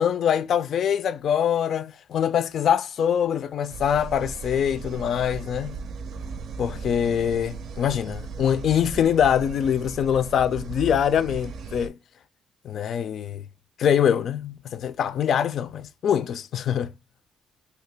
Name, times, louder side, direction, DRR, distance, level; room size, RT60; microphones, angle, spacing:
voice 1, 0.0-5.8 6.6-11.9 12.6-13.4 13.8-16.9, left 8 dB, 65° left, 0.3 m, -24 dB
sound 1, 3.7-11.9, right 5 dB, 70° right, 0.5 m, -37 dB
2.9 x 2.8 x 3.2 m
cardioid pair, 90°, 0 cm